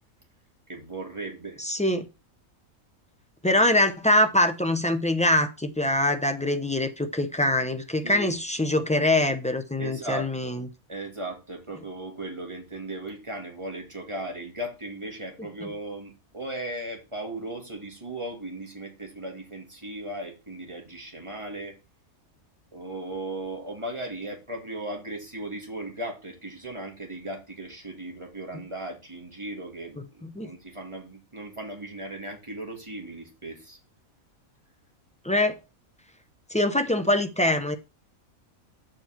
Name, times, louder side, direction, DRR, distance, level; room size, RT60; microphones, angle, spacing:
voice 1, 0.7-1.6 8.0-8.3 9.8-10.6 10.9-21.8 22.7-33.8, right 1 dB, 20° right, 2.1 m, -37 dB
voice 2, 1.6-2.1 3.4-10.7 30.2-30.5 35.2-35.6 36.5-37.8, left 1 dB, 10° left, 0.3 m, -24 dB
7.6 x 4.4 x 5.8 m
omnidirectional pair, 1.5 m